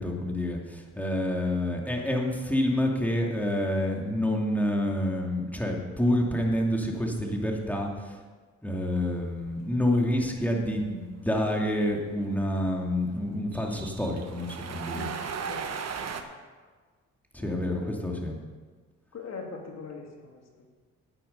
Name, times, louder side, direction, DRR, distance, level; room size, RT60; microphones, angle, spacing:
voice 1, 0.0-8.2 8.6-15.1 17.3-18.4, left 1 dB, 5° left, 0 dB, 2.5 m, -28 dB
sound 1, 9.0-16.2, right 6 dB, 55° right, 1.2 m, -38 dB
voice 2, 14.9-15.7 16.0-16.2 17.4-18.5 19.1-20.7, left 4 dB, 55° left, 1 dB, 2.7 m, -42 dB
9.9 x 9.0 x 6.7 m, 1.4 s
cardioid pair, 80°, 31 cm